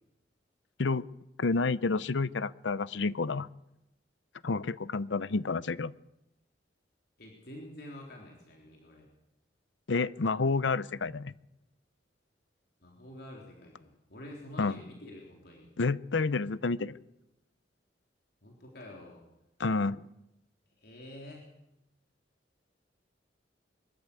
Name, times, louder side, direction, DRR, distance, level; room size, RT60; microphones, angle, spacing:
voice 1, 1.4-3.5 4.4-5.9 9.9-11.3 14.6-14.8 15.8-17.0 19.6-20.0, left 3 dB, 80° left, 0.7 m, -29 dB
voice 2, 7.2-9.1 12.8-15.7 18.4-19.2 20.8-21.5, left 1 dB, 60° left, 3.7 m, -48 dB
23.0 x 13.5 x 8.6 m
head